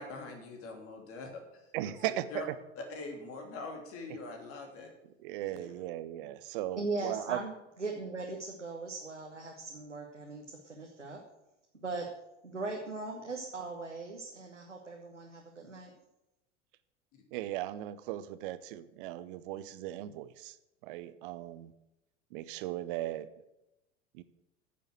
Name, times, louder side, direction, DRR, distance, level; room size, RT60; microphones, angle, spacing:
voice 1, 0.0-1.7 2.3-2.4 2.8-4.9 5.5-5.7, left 3 dB, 40° left, 3 dB, 2.9 m, -43 dB
voice 2, 1.7-2.6 5.2-7.4 17.3-20.6 20.8-21.7 22.3-23.3 24.1-24.2, right 14 dB, 45° right, 14 dB, 0.8 m, -37 dB
voice 3, 6.8-7.5 7.8-11.2 11.8-12.1 12.4-15.9, right 3 dB, 85° right, 0 dB, 1.3 m, -39 dB
9.7 x 7.0 x 7.7 m, 0.92 s
figure-of-eight pair, 80°, 36 cm